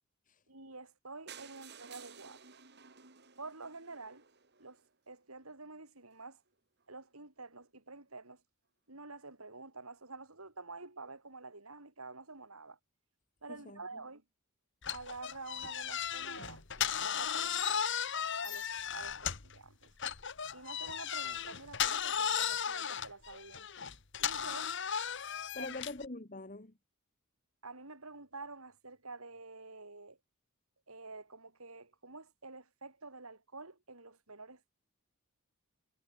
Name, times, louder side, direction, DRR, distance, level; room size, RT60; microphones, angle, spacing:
voice 1, 0.5-2.6 3.4-4.2 4.6-6.4 6.9-8.4 8.9-12.8 13.4-14.2 14.9-17.9 18.4-19.9 20.5-23.7 24.2-24.8 25.6-25.8 27.6-30.2 30.9-34.7, right 3 dB, 90° right, 7.7 m, -49 dB
sound 1, 1.3-5.2 5.8-5.9 6.1-6.3 6.5-6.6 6.8-6.9, right 7 dB, 50° right, 4.2 m, -55 dB
voice 2, 13.5-13.8 25.5-26.7, left 2 dB, 40° left, 1.6 m, -44 dB
sound 2, 14.8-19.6 20.0-26.1, left 8 dB, 55° left, 1.7 m, -35 dB
head